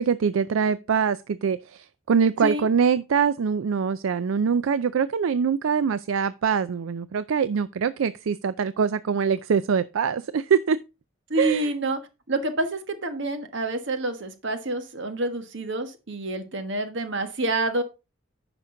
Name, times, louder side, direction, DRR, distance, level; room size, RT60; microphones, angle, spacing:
voice 1, 0.0-10.8 11.4-11.7, right 6 dB, 80° right, 0.4 m, -23 dB
voice 2, 11.3-12.0 12.3-17.8, right 2 dB, 60° right, 1.4 m, -28 dB
10.0 x 6.0 x 3.8 m
head